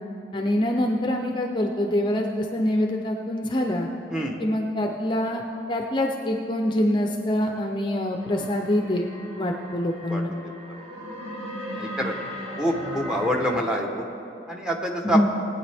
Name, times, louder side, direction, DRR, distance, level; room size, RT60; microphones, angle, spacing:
voice 1, 0.3-3.9 4.4-5.4 5.7-9.1 9.4-10.3 15.0-15.2, left 1 dB, 25° left, 2 dB, 0.6 m, -25 dB
voice 2, 4.1-4.4 10.1-10.2 11.8-12.1 12.6-14.1 14.5-15.2, equal, 5° right, 1 dB, 1.0 m, -26 dB
sound 1, 8.2-13.6, equal, 35° right, 2.0 m, -37 dB
19.5 x 9.1 x 3.4 m, 2.9 s
head